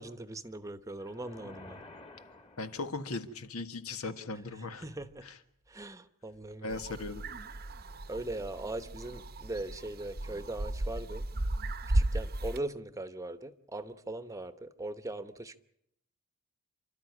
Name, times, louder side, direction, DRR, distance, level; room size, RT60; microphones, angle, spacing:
voice 1, 0.0-1.8 4.8-5.3 5.7-6.8 8.1-11.3 11.9-15.6, right 2 dB, 15° right, 11 dB, 0.9 m, -40 dB
sound 1, 1.0-3.3, left 2 dB, 25° left, 1.8 m, -52 dB
voice 2, 2.6-4.8 5.2-5.4 6.6-7.2, left 3 dB, 85° left, 8 dB, 1.7 m, -38 dB
sound 2, 6.7-12.6, right 1 dB, 45° right, 0.8 m, -35 dB
29.5 x 13.0 x 9.8 m, 0.76 s
head